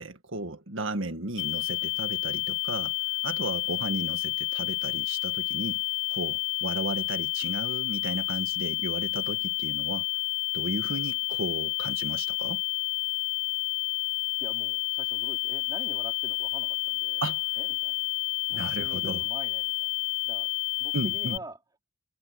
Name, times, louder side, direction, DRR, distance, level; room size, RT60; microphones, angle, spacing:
voice 1, 0.0-2.9 3.2-5.8 6.1-10.1 10.5-12.6 17.2-17.5 18.5-19.2 20.9-21.4, right 2 dB, 85° right, 1.8 m, -34 dB
sound 1, 1.4-21.4, left 31 dB, 75° left, 1.2 m, -30 dB
voice 2, 14.4-17.2 17.6-18.1 18.5-19.9 20.2-20.5 20.8-21.6, right 1 dB, 20° right, 3.5 m, -45 dB
head